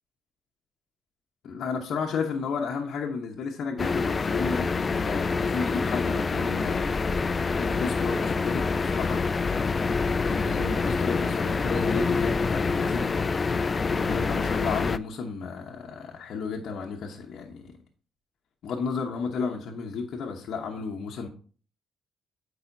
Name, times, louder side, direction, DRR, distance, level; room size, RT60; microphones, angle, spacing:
voice 1, 1.4-7.2 7.6-9.2 10.3-13.1 13.8-17.7 18.6-21.3, left 5 dB, 70° left, 0.9 m, -33 dB
sound 1, 3.8-15.0, left 4 dB, 30° left, 0.3 m, -26 dB
8.2 x 4.9 x 2.6 m
cardioid pair, 90°, 0 cm